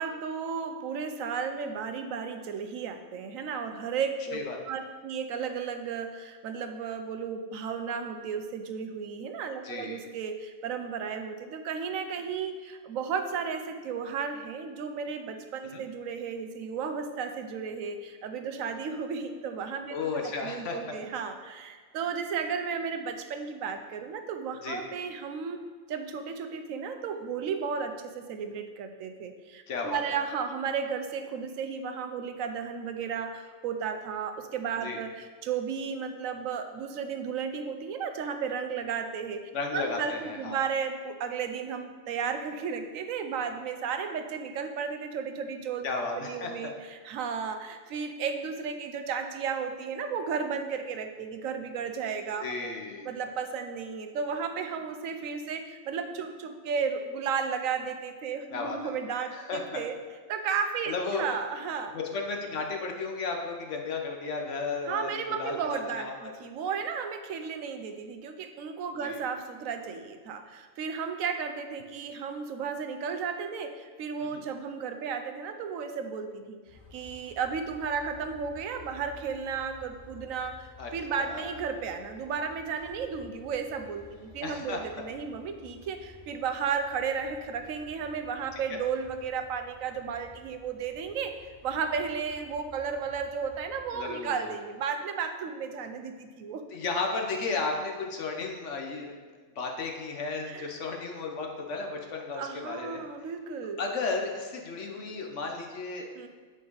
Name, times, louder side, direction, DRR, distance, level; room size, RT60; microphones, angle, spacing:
voice 1, 0.0-4.4 4.7-20.0 20.2-25.6 25.9-39.4 39.7-45.9 46.2-52.7 53.0-60.0 60.3-61.9 64.8-76.6 76.9-91.3 91.6-96.6 100.5-100.8 102.3-103.8 106.2-106.3, right 6 dB, 85° right, 7 dB, 1.1 m, -34 dB
voice 2, 9.6-10.0 15.7-15.8 19.9-20.9 24.6-24.8 29.7-30.2 34.8-35.0 39.5-40.7 45.8-46.7 52.4-53.1 58.5-58.8 59.3-59.8 60.9-61.2 61.9-66.3 69.0-69.2 74.3-74.4 80.8-80.9 81.2-81.5 84.4-84.8 88.7-88.8 93.9-94.6 96.7-99.2 99.6-103.0 103.8-106.1, left 4 dB, 65° left, 2 dB, 1.2 m, -34 dB
sound 1, 76.7-94.0, left 3 dB, 45° left, 2.1 m, -53 dB
8.3 x 5.1 x 3.9 m, 1.5 s
omnidirectional pair, 1.3 m